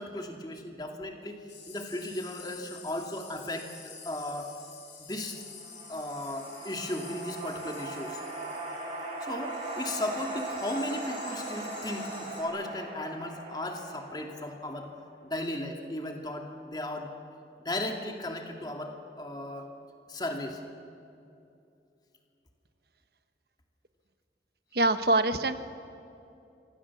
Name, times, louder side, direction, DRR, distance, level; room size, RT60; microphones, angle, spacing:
voice 1, 0.0-1.4 1.7-3.7 4.0-4.5 5.0-5.4 5.9-8.2 9.2-14.9 15.2-17.1 17.6-19.7 20.1-20.6, left 1 dB, 25° left, 3 dB, 2.4 m, -36 dB
sound 1, 1.5-12.4, left 5 dB, 90° left, 6.4 m, -49 dB
sound 2, 5.3-14.9, right 2 dB, 40° right, 6.7 m, -39 dB
voice 2, 24.7-25.5, right 2 dB, 60° right, 10 dB, 1.3 m, -24 dB
26.5 x 25.5 x 7.3 m, 2.7 s
head